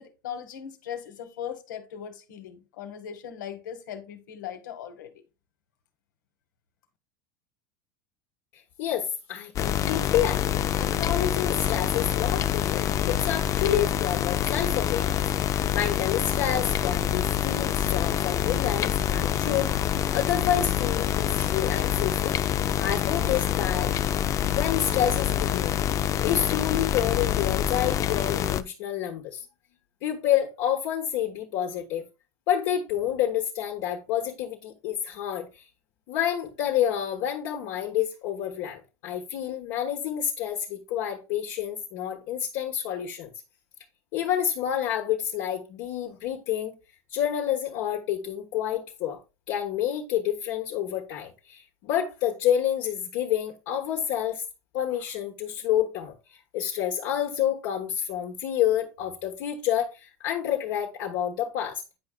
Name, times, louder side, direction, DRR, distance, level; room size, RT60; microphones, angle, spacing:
voice 1, 0.0-5.1, left 9 dB, 90° left, 1.1 m, -39 dB
voice 2, 8.5-19.7 20.1-22.4 22.8-24.0 24.5-25.8 26.2-29.4 30.0-32.0 32.5-35.6 36.1-43.3 44.1-46.7 47.1-49.2 49.5-54.4 54.7-61.8, left 10 dB, 60° left, 1.1 m, -29 dB
sound 1, 9.6-28.6, left 10 dB, 30° left, 0.4 m, -26 dB
9.4 x 4.8 x 2.2 m
supercardioid pair, 125°, 10 cm